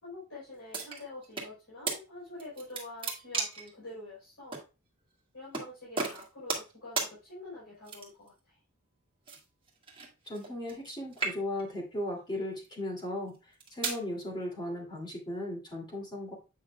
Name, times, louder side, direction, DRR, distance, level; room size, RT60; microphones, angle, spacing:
voice 1, 0.0-4.6 5.3-8.6, left 2 dB, 75° left, -7 dB, 3.9 m, -46 dB
sound 1, 0.7-1.5 1.9-2.0 2.4-3.7 4.5-4.6 5.5-5.7 6.0-6.7 7.0-7.1 7.8-8.3 9.3-10.9 11.1-11.7 12.4-12.7 13.3-14.0, right 4 dB, 25° right, 1.7 m, -35 dB
voice 2, 10.3-13.3 13.7-16.3, left 1 dB, 20° left, -1 dB, 2.5 m, -36 dB
8.4 x 6.2 x 2.3 m, 0.30 s
head